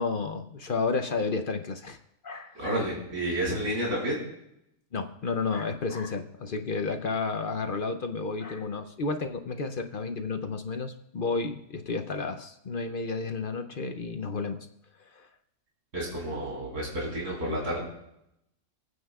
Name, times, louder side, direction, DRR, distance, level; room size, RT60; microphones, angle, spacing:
voice 1, 0.0-2.0 2.2-2.9 4.9-14.7 15.1-15.3, left 4 dB, 55° left, 7 dB, 0.6 m, -31 dB
voice 2, 2.6-4.2 15.9-17.8, right 1 dB, 60° right, -5 dB, 4.2 m, -30 dB
27.5 x 9.4 x 2.3 m, 0.81 s
omnidirectional pair, 1.5 m